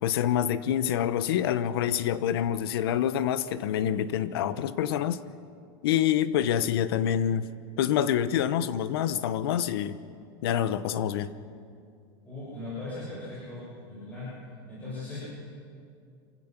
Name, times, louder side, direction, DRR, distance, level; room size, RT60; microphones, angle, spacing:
voice 1, 0.0-5.2 5.8-7.5 7.8-10.0 10.4-11.3, left 10 dB, 80° left, 14 dB, 0.9 m, -26 dB
voice 2, 12.2-14.3 14.7-15.2, left 2 dB, 10° left, -10 dB, 6.6 m, -38 dB
27.0 x 16.0 x 6.0 m, 2.3 s
supercardioid pair, 170°, 13 cm